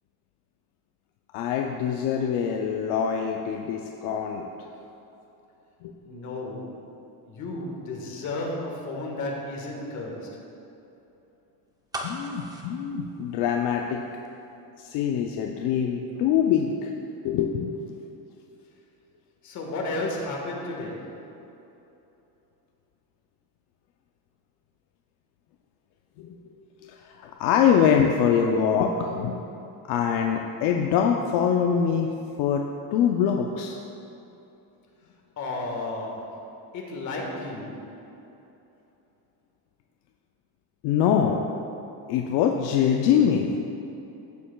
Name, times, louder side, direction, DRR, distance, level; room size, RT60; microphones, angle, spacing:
voice 1, 1.3-4.5 5.8-5.9 12.0-14.1 14.8-16.9 17.2-17.7 26.2-26.4 26.8-29.3 29.9-32.1 32.4-33.8 40.8-41.4 42.1-43.6, left 8 dB, 75° left, 2 dB, 0.6 m, -24 dB
voice 2, 6.0-6.9 7.2-10.4 19.4-21.2 35.4-36.4 36.7-37.9, left 2 dB, 45° left, -1 dB, 1.6 m, -33 dB
sound 1, 11.9-13.9 14.2-14.3, right 1 dB, 10° right, 0.6 m, -37 dB
14.5 x 6.6 x 2.3 m, 3.0 s
cardioid pair, 145°, 39 cm